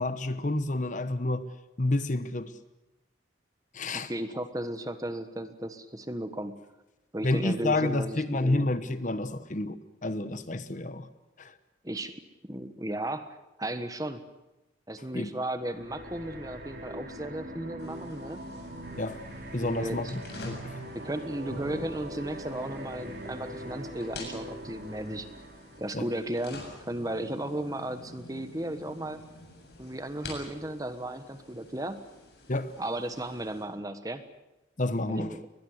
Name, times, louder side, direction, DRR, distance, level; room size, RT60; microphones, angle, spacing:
voice 1, 0.0-1.5 1.8-2.5 3.7-4.1 7.2-11.1 11.4-11.5 15.1-15.3 19.0-19.2 19.5-20.8 25.9-26.1 32.5-32.7 34.8-35.4, left 2 dB, 40° left, 1.1 m, -29 dB
voice 2, 3.9-6.6 7.1-8.7 11.8-12.1 12.4-14.2 14.9-18.4 19.6-20.1 20.9-25.3 25.8-29.2 29.8-32.0 32.8-34.2 35.1-35.4, right 1 dB, 20° right, 1.3 m, -35 dB
sound 1, 15.7-26.2, right 1 dB, 55° right, 3.5 m, -42 dB
sound 2, 17.8-33.6, left 2 dB, 60° left, 7.4 m, -49 dB
22.0 x 21.0 x 8.0 m
head